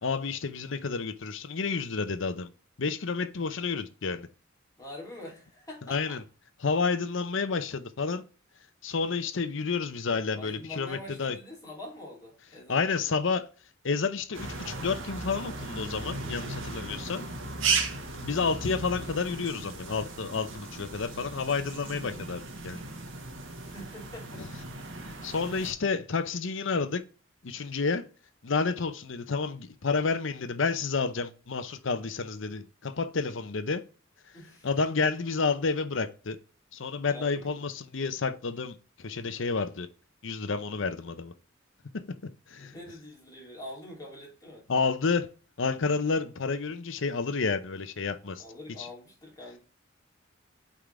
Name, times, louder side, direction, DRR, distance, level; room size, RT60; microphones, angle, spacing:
voice 1, 0.0-2.5 2.8-4.3 5.9-6.2 6.6-8.2 8.8-11.4 12.7-13.5 13.8-17.3 18.2-22.9 24.4-24.5 25.2-27.0 27.4-28.0 28.4-33.8 34.6-36.4 36.7-39.9 40.2-41.3 42.5-42.7 44.7-45.3 45.6-48.4 48.8-48.9, left 4 dB, 70° left, 0.7 m, -30 dB
voice 2, 4.8-6.2 10.3-13.1 23.5-24.4 34.3-34.7 37.1-37.6 42.6-44.6 48.4-49.6, left 1 dB, 20° left, 2.6 m, -45 dB
sound 1, 14.3-25.7, right 4 dB, 70° right, 1.4 m, -36 dB
8.4 x 3.8 x 3.3 m
head